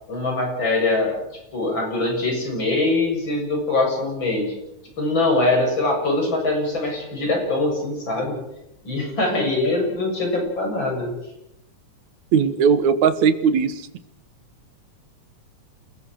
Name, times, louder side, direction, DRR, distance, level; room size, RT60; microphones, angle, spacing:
voice 1, 0.1-1.2 1.5-4.5 5.0-8.4 8.8-11.2, left 2 dB, 40° left, 2 dB, 7.9 m, -23 dB
voice 2, 12.3-13.9, right 6 dB, 75° right, 12 dB, 2.7 m, -18 dB
28.5 x 20.0 x 6.5 m, 0.84 s
omnidirectional pair, 3.4 m